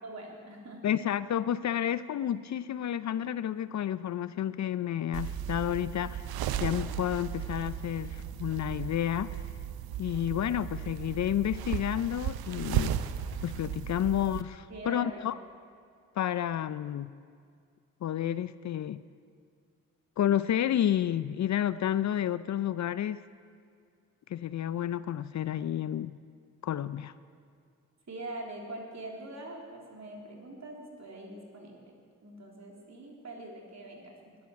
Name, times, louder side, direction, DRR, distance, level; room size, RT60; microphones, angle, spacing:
voice 1, 0.0-1.0 14.7-15.3 28.1-31.9 32.2-34.4, right 2 dB, 45° right, -1 dB, 3.6 m, -43 dB
voice 2, 0.8-6.2 6.6-9.4 10.0-13.0 13.4-15.3 16.2-17.1 18.0-19.0 20.2-23.2 24.3-26.2 26.6-27.1, left 11 dB, 50° left, 16 dB, 0.5 m, -30 dB
sound 1, 5.1-14.4, right 10 dB, 75° right, 0.7 m, -35 dB
15.0 x 10.5 x 7.0 m, 2.2 s
supercardioid pair, 45°, 36 cm